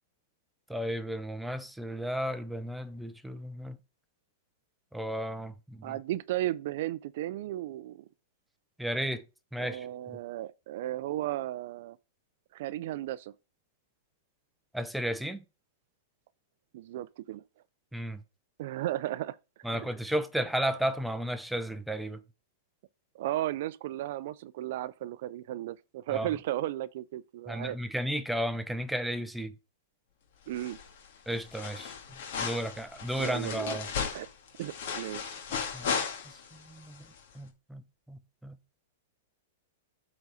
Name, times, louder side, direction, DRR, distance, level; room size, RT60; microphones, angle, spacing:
voice 1, 0.7-3.8 4.9-5.9 8.8-9.2 9.5-9.9 14.7-15.4 17.9-18.2 19.6-22.2 26.1-26.3 27.5-29.5 31.3-31.9 32.4-33.9 35.7-35.9 36.3-36.4 36.6-37.0 37.4-37.8 38.1-38.6, equal, ahead, 0.7 m, -33 dB
voice 2, 5.8-8.0 9.6-12.0 12.5-13.3 16.7-17.4 18.6-19.9 23.1-27.8 30.5-30.8 33.2-33.8 34.1-34.3 34.6-35.4, right 14 dB, 60° right, 0.4 m, -35 dB
sound 1, 30.5-31.1 31.3-36.6 37.0-37.1, left 6 dB, 65° left, 1.9 m, -36 dB
8.1 x 4.0 x 4.8 m
hypercardioid pair, 135°, 0 cm